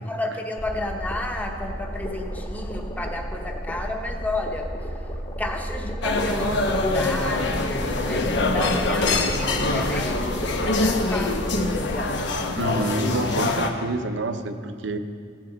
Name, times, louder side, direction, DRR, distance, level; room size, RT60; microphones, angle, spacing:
voice 1, 0.0-4.7 5.4-12.2, left 1 dB, 10° left, 2 dB, 0.9 m, -32 dB
sound 1, 0.6-12.5, equal, 30° left, 1.3 m, -33 dB
sound 2, 6.0-13.7, left 2 dB, 70° left, 0.9 m, -24 dB
voice 2, 12.6-15.0, right 2 dB, 80° right, 8 dB, 0.8 m, -28 dB
16.0 x 10.5 x 3.9 m, 2.2 s
head